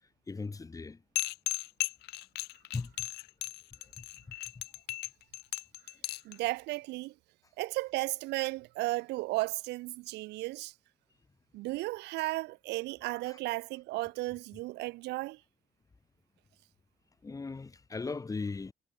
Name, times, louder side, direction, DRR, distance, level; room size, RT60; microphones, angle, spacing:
voice 1, 0.3-1.0 2.7-3.1 4.0-4.1 13.3-13.4 17.2-18.7, left 4 dB, 20° left, 1.5 m, -38 dB
sound 1, 1.2-6.3, left 18 dB, 75° left, 0.5 m, -36 dB
voice 2, 6.2-7.1 7.6-10.7 11.5-15.4, right 20 dB, 85° right, 0.8 m, -34 dB
cardioid pair, 110°, 17 cm